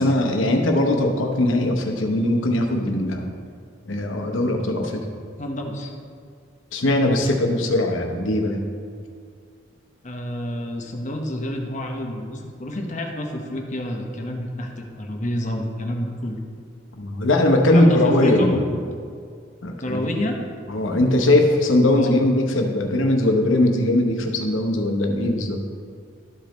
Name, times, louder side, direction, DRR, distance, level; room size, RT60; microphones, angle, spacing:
voice 1, 0.0-3.3 3.8-5.0 6.7-8.6 16.9-18.6 19.6-20.1 20.7-25.6, left 1 dB, 80° left, 3 dB, 0.9 m, -20 dB
voice 2, 5.4-5.9 10.0-16.4 17.7-18.8 19.8-20.4 22.0-22.2, left 1 dB, 40° left, 2 dB, 0.9 m, -28 dB
12.5 x 5.1 x 3.1 m, 2.2 s
head